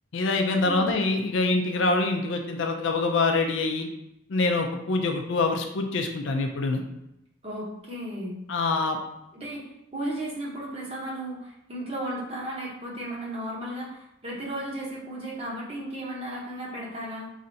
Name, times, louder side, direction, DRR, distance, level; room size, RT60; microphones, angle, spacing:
voice 1, 0.1-3.9 4.3-6.8 8.5-9.0, left 3 dB, 60° left, 4 dB, 0.5 m, -25 dB
voice 2, 0.6-1.0 7.4-8.4 9.3-9.6 9.9-17.3, right 1 dB, 30° right, -4 dB, 0.9 m, -34 dB
4.0 x 3.2 x 2.7 m, 0.86 s
head